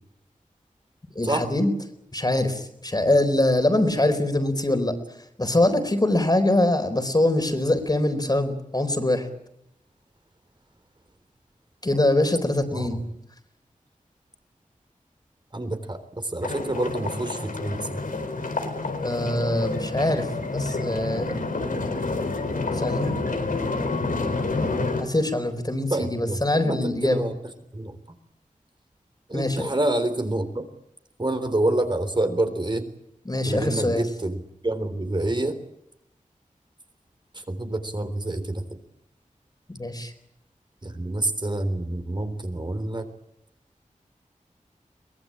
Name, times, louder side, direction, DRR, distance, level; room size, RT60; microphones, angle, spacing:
voice 1, 1.2-1.7 2.1-4.9 5.4-9.3 11.8-13.0 19.0-21.3 22.7-23.1 25.0-27.3 29.3-29.7 33.3-34.1 39.7-40.1, left 1 dB, 30° left, 8 dB, 4.2 m, -23 dB
voice 2, 12.7-13.0 15.5-18.0 25.9-27.4 27.7-27.9 29.3-30.6 31.2-32.9 33.4-35.6 37.3-38.8 40.8-43.1, right 1 dB, 35° right, 8 dB, 3.7 m, -27 dB
sound 1, 16.4-25.0, left 3 dB, 85° left, 4.4 m, -28 dB
23.5 x 20.0 x 8.8 m, 0.80 s
wide cardioid pair, 60°, 14 cm